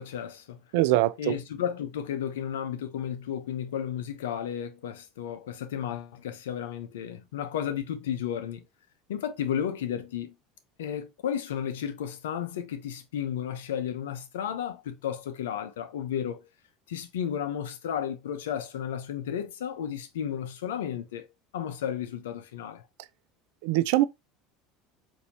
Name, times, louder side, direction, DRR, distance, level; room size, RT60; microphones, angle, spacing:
voice 1, 0.0-0.6 1.2-8.6 9.1-10.3 10.8-16.4 16.9-21.2 21.5-22.8, left 9 dB, 85° left, 0.6 m, -33 dB
voice 2, 0.7-1.3 23.6-24.0, right 16 dB, 75° right, 0.3 m, -23 dB
4.2 x 2.7 x 2.7 m
hypercardioid pair, 85°, 0 cm